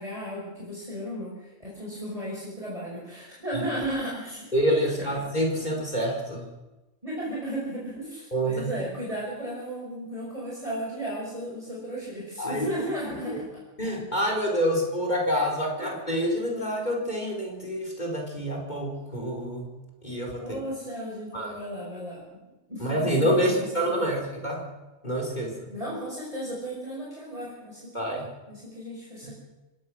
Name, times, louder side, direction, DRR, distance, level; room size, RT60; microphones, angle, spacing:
voice 1, 0.0-4.4 5.0-5.1 7.0-13.5 15.8-15.9 20.4-22.4 22.7-24.2 25.7-29.3, right 1 dB, 30° right, -5 dB, 5.9 m, -35 dB
voice 2, 4.5-6.4 8.3-8.7 12.4-12.7 13.3-13.4 13.8-19.7 20.0-20.6 21.3-21.5 22.8-24.6 25.0-25.7 27.9-28.2, equal, 35° left, 0 dB, 4.7 m, -27 dB
26.5 x 17.5 x 6.4 m, 1.1 s
omnidirectional pair, 1.2 m